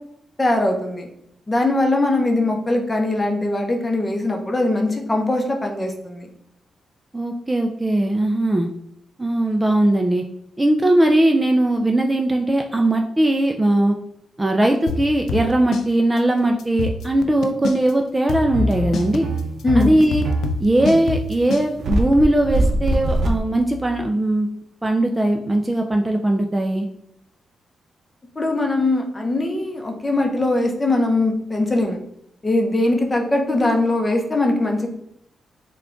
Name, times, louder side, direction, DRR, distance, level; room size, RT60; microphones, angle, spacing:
voice 1, 0.4-1.1 1.5-6.3 19.6-19.9 28.4-32.0 32.4-34.9, left 2 dB, 20° left, 2 dB, 0.7 m, -21 dB
voice 2, 7.1-8.7 9.2-10.2 10.6-13.9 14.4-19.3 19.8-20.3 20.6-24.5 24.8-26.9, right 1 dB, 15° right, 3 dB, 0.3 m, -19 dB
sound 1, 14.9-15.9 16.2-16.3 16.6-17.9 18.3-21.7, left 4 dB, 85° left, 0.4 m, -26 dB
sound 2, 18.5-24.1, right 1 dB, 65° right, 0.5 m, -23 dB
3.5 x 2.3 x 3.7 m, 0.74 s
cardioid pair, 95°, 0 cm